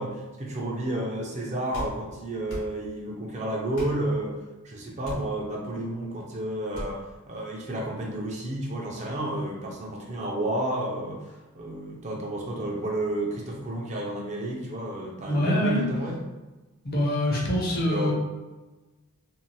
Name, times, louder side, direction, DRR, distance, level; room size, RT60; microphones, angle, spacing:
voice 1, 0.0-4.4 4.6-16.2 17.9-18.1, right 1 dB, 35° right, -1 dB, 0.5 m, -31 dB
sound 1, 1.7-2.0 2.5-2.7 3.7-4.0 5.0-5.3 6.7-6.9, equal, 70° left, 0.9 m, -36 dB
voice 2, 15.3-15.9 16.8-18.1, left 1 dB, 45° left, -3 dB, 0.6 m, -24 dB
2.7 x 2.1 x 3.0 m, 1.1 s
head